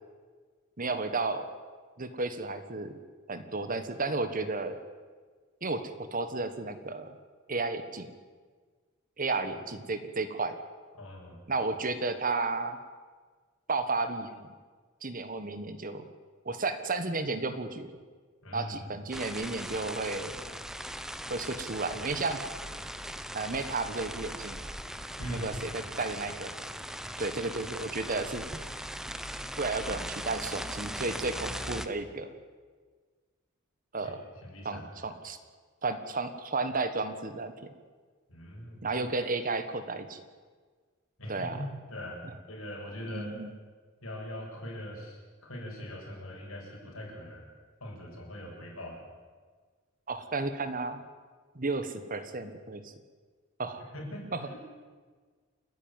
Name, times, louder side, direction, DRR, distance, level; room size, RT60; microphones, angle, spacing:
voice 1, 0.8-1.4 2.0-2.9 3.3-4.8 5.6-7.1 7.5-8.1 9.2-10.6 11.5-12.8 13.7-14.5 15.0-16.1 16.4-17.9 18.5-20.3 21.3-22.4 23.3-24.7 25.3-26.5 27.2-28.4 29.6-32.3 33.9-34.2 34.6-35.4 35.8-37.5 38.8-40.2 41.3-41.6 43.1-43.5 50.1-51.0 51.5-52.8 53.6-53.8 54.3-54.4, right 3 dB, 40° right, 10 dB, 1.4 m, -33 dB
voice 2, 10.9-11.5 18.4-19.0 25.2-25.9 34.0-34.1 34.4-35.2 38.3-38.9 41.2-42.2 42.5-43.3 44.0-47.5 47.8-49.0 53.9-54.6, left 1 dB, 75° left, -2 dB, 7.3 m, -41 dB
sound 1, 19.1-31.9, equal, ahead, 0.9 m, -39 dB
29.0 x 10.5 x 9.1 m, 1.5 s
head